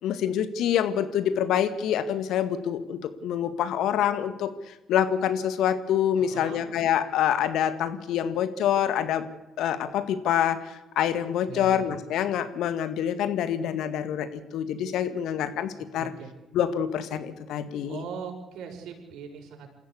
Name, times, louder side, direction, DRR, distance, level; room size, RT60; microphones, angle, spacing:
voice 1, 0.0-9.2 9.6-16.1 16.5-18.0, left 9 dB, 65° left, 10 dB, 1.9 m, -26 dB
voice 2, 6.2-6.6 11.5-11.9 16.0-16.3 17.8-19.7, right 7 dB, 60° right, 2 dB, 6.2 m, -40 dB
28.0 x 14.5 x 8.5 m, 1.0 s
hypercardioid pair, 50°, 0 cm